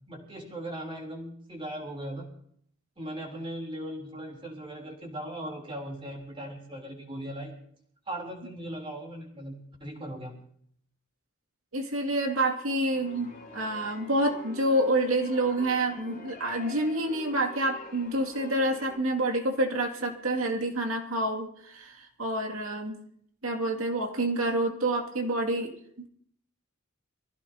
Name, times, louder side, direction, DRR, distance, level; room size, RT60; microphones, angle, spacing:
voice 1, 0.0-2.3 3.0-7.5 8.1-10.3, right 1 dB, 25° right, -1 dB, 3.6 m, -38 dB
voice 2, 11.7-23.0 23.4-26.1, right 1 dB, 90° right, 2 dB, 2.5 m, -28 dB
sound 1, 12.9-19.0, left 2 dB, 45° left, 3.1 m, -46 dB
24.5 x 15.5 x 2.9 m, 0.65 s
head